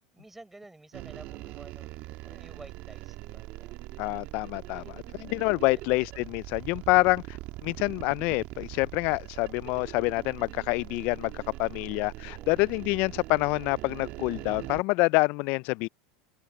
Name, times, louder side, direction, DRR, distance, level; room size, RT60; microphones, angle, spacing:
voice 1, 0.1-1.9 2.2-3.8 4.7-4.9 5.2-6.0 6.8-6.9 11.5-12.6, right 2 dB, 5° right, 4.7 m, -52 dB
sound 1, 0.9-14.8, right 19 dB, 55° right, 1.7 m, -42 dB
voice 2, 4.0-4.8 5.2-15.9, left 25 dB, 60° left, 0.3 m, -27 dB
supercardioid pair, 115°, 3 cm